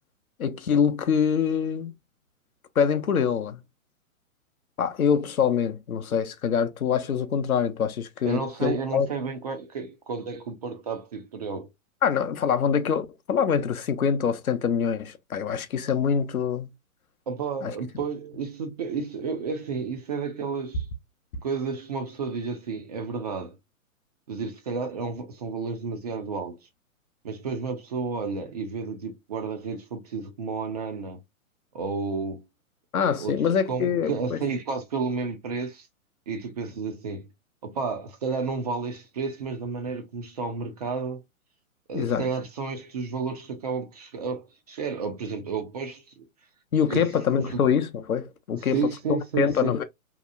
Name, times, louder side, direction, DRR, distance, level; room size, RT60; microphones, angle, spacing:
voice 1, 0.4-1.9 2.8-3.6 4.8-9.1 12.0-16.7 17.6-17.7 32.9-34.4 41.9-42.3 46.7-48.8 49.4-49.8, left 7 dB, 85° left, 0.6 m, -25 dB
voice 2, 8.2-11.7 17.3-20.9 21.4-23.5 24.3-26.6 27.2-31.2 31.7-32.4 33.2-33.4 33.7-35.9 36.3-37.3 37.6-41.2 41.9-46.2 46.9-47.0 47.3-47.4 48.7-49.7, right 5 dB, 30° right, 0.4 m, -31 dB
2.8 x 2.0 x 2.4 m
figure-of-eight pair, 115°, 42 cm